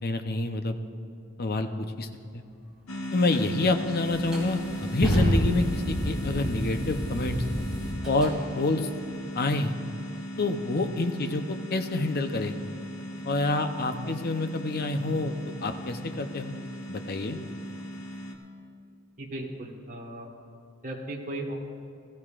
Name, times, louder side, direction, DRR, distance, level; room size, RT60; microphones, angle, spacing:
voice 1, 0.0-0.7 1.4-2.1 2.3-2.4 3.1-7.4 8.0-8.9 9.3-9.7 10.4-12.6 13.2-15.3 15.6-16.6 16.9-17.4, left 2 dB, 45° left, 7 dB, 0.7 m, -27 dB
sound 1, 2.9-18.4, equal, 80° left, 1.2 m, -38 dB
sound 2, 3.3-3.4 4.0-8.3, equal, 5° right, 3.4 m, -29 dB
voice 2, 19.2-20.3 20.8-21.5, right 1 dB, 35° right, 0 dB, 1.5 m, -36 dB
20.5 x 14.0 x 2.5 m, 2.4 s
head